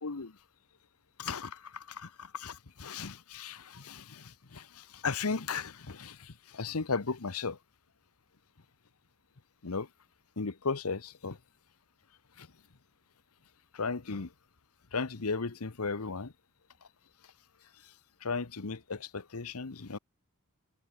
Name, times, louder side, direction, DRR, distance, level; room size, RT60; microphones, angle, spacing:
voice 1, 0.0-0.4 1.2-7.6 9.6-9.9 10.4-11.4 12.4-12.5 13.7-14.3 14.9-16.3 17.8-17.9 18.2-20.0, left 4 dB, 75° left, 1.1 m, -36 dB
head